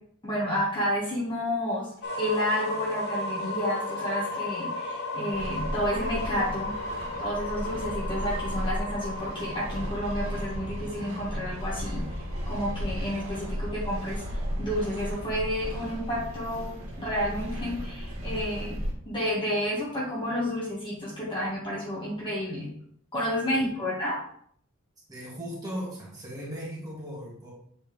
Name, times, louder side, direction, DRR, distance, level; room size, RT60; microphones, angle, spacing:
voice 1, 0.2-1.9 2.2-6.7 7.2-12.0 12.5-14.2 14.6-16.7 17.0-18.8 19.0-22.7 23.1-24.2, equal, 25° left, -6 dB, 1.9 m, -30 dB
sound 1, 2.0-13.8, left 2 dB, 50° left, 0.9 m, -35 dB
sound 2, 5.3-18.9, equal, 80° right, 1.8 m, -35 dB
voice 2, 25.1-27.5, equal, 20° right, -5 dB, 2.3 m, -37 dB
7.4 x 4.4 x 3.5 m, 0.63 s
head